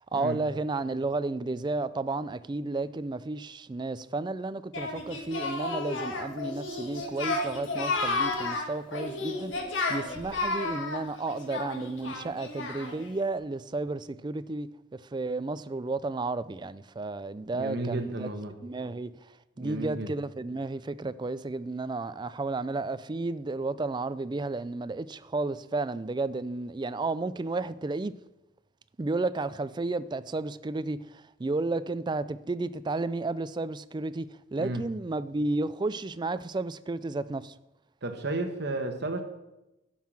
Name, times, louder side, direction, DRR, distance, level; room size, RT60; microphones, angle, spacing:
voice 1, 0.1-18.3 18.6-28.1 29.0-37.5, right 3 dB, 25° right, 0.4 m, -32 dB
Singing, 4.7-13.1, left 3 dB, 75° left, 1.8 m, -32 dB
voice 2, 17.5-18.5 19.6-20.1 34.6-34.8 38.0-39.2, right 2 dB, 60° right, 1.3 m, -33 dB
12.0 x 5.7 x 7.4 m
head